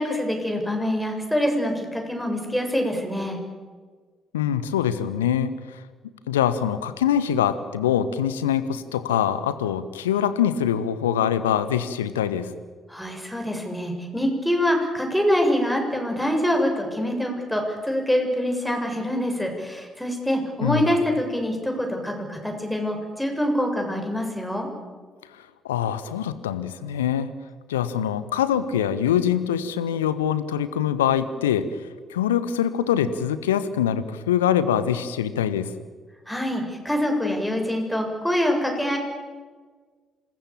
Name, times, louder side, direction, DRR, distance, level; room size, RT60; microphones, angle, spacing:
voice 1, 0.0-3.4 12.9-24.7 36.3-39.0, equal, ahead, 2 dB, 7.3 m, -25 dB
voice 2, 4.3-5.8 6.3-12.5 20.6-20.9 25.6-27.3 27.7-31.7 32.1-35.7, left 9 dB, 75° left, 14 dB, 1.2 m, -24 dB
27.0 x 20.0 x 8.8 m, 1.5 s
figure-of-eight pair, 45°, 0 cm